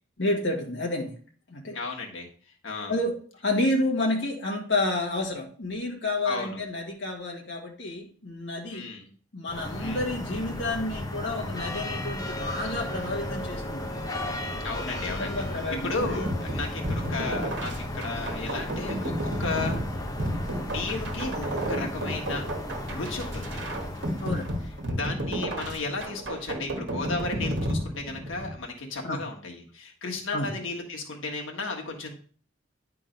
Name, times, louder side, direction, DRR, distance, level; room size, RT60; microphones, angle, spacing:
voice 1, 0.2-1.2 1.5-1.8 2.9-8.9 9.3-13.9 15.1-16.3 24.2-24.5 29.0-29.2 30.3-30.5, left 2 dB, 65° left, 0 dB, 1.4 m, -30 dB
voice 2, 1.7-2.3 2.6-3.0 6.2-6.6 8.7-9.1 9.8-10.0 14.6-15.4 15.8-19.8 20.6-22.4 22.9-23.6 24.9-32.2, left 3 dB, 90° left, 1 dB, 1.6 m, -34 dB
sound 1, 9.5-25.0, left 1 dB, 20° left, 0.9 m, -35 dB
sound 2, 16.0-28.6, right 1 dB, 60° right, 1.5 m, -32 dB
10.0 x 3.8 x 5.2 m, 0.43 s
head